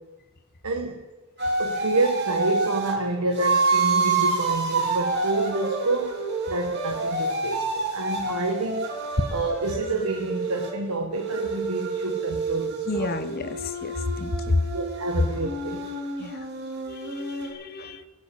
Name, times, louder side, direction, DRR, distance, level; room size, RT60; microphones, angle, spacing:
voice 1, 0.6-1.0 1.6-6.2 6.5-8.9 9.3-13.1 14.7-15.9, right 2 dB, 90° right, 3 dB, 1.2 m, -28 dB
sound 1, 1.4-3.0 3.4-10.7 11.1-17.5, right 3 dB, 50° right, 2.6 m, -28 dB
voice 2, 12.9-14.4 16.2-16.4 16.9-18.0, left 3 dB, 45° left, 10 dB, 0.9 m, -32 dB
18.0 x 6.7 x 8.4 m, 1.2 s
head